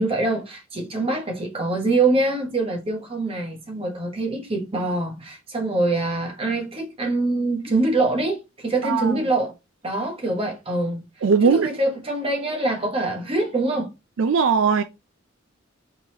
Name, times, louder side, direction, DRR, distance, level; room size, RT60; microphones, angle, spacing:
voice 1, 0.0-9.5 9.8-11.0 11.5-13.9, right 2 dB, 30° right, 1.2 m, -24 dB
voice 2, 8.8-9.2 11.2-11.7 14.2-14.8, right 5 dB, 70° right, 0.4 m, -19 dB
4.7 x 3.9 x 2.8 m
head